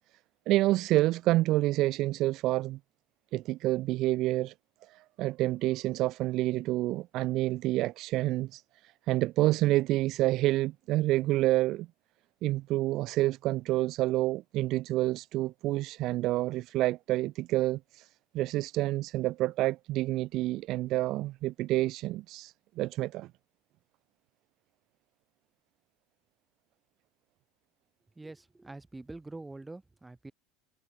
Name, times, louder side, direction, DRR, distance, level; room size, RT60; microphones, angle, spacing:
voice 1, 0.5-2.8 3.3-4.5 4.9-11.9 12.4-18.1 18.3-23.3, right 17 dB, 40° right, 1.8 m, -28 dB
voice 2, 28.2-30.3, right 2 dB, 5° right, 5.7 m, -45 dB
cardioid pair, 175°, 0 cm